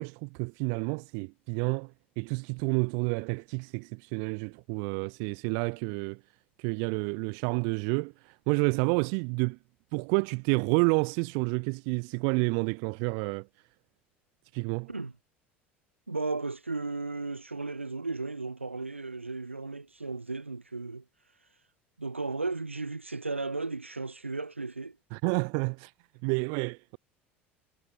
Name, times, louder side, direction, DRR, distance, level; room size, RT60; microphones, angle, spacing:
voice 1, 0.0-6.2 6.6-9.6 9.9-13.5 14.5-14.9 25.1-25.9 26.2-27.0, right 40 dB or more, 55° right, 0.4 m, -29 dB
voice 2, 16.1-21.0 22.0-25.0, right 3 dB, 90° right, 0.7 m, -35 dB
figure-of-eight pair, 70°, 6 cm